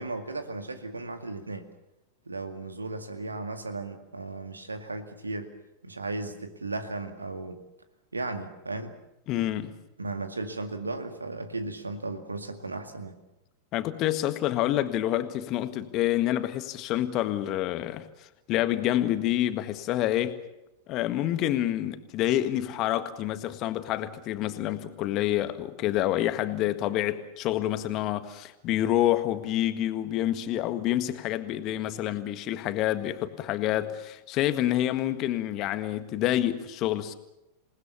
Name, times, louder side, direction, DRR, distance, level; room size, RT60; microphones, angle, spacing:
voice 1, 0.0-1.7 2.3-5.5 5.8-7.6 8.1-9.0 10.0-13.2, right 2 dB, 80° right, 2.1 m, -35 dB
voice 2, 9.3-9.8 13.7-20.4 20.9-37.1, left 13 dB, 40° left, 1.7 m, -28 dB
28.0 x 19.5 x 7.0 m
figure-of-eight pair, 90°, 0 cm